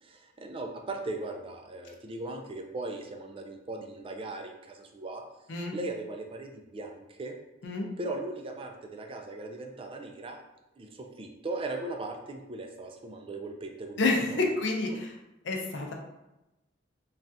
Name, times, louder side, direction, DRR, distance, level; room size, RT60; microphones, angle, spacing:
voice 1, 0.0-5.2 5.7-7.4 8.0-10.4 10.8-14.4, right 2 dB, 30° right, 3 dB, 0.4 m, -38 dB
voice 2, 14.0-15.1 15.4-15.9, left 3 dB, 70° left, 1 dB, 0.6 m, -28 dB
3.3 x 2.4 x 2.6 m, 0.95 s
head